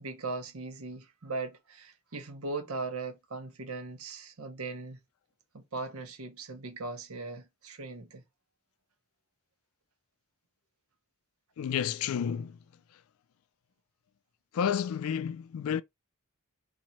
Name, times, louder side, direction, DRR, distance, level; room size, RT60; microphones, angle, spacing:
voice 1, 0.0-5.0 5.5-8.2, right 3 dB, 75° right, 1.0 m, -39 dB
voice 2, 11.6-12.6 14.5-15.8, left 8 dB, 70° left, 0.3 m, -30 dB
3.0 x 2.7 x 4.1 m
head